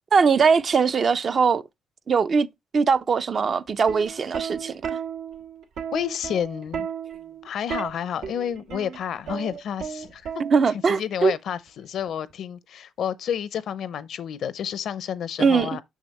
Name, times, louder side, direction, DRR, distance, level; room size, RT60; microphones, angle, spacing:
voice 1, 0.1-1.6 2.1-2.5 2.7-5.0 10.4-11.3 15.4-15.7, right 5 dB, 45° right, 0.5 m, -21 dB
Plucked string instrument, 3.7-10.9 12.0-12.3, right 7 dB, 85° right, 1.4 m, -34 dB
voice 2, 5.9-6.9 7.4-10.3 10.9-15.8, left 9 dB, 70° left, 0.6 m, -30 dB
6.5 x 6.3 x 3.0 m
cardioid pair, 90°, 0 cm